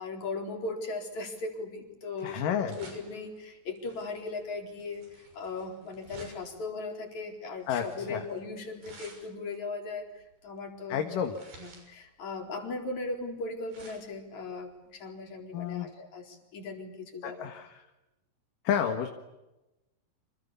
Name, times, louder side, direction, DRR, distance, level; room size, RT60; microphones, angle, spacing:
voice 1, 0.0-11.0 11.6-17.5, left 3 dB, 50° left, 3 dB, 5.4 m, -38 dB
sound 1, 1.1-15.9, right 2 dB, 85° right, 8.2 m, -54 dB
voice 2, 2.2-2.8 7.7-8.2 10.9-11.3 15.5-15.9 17.2-17.7 18.6-19.1, left 8 dB, 70° left, 5 dB, 3.2 m, -30 dB
29.5 x 27.0 x 7.1 m, 0.98 s
omnidirectional pair, 4.2 m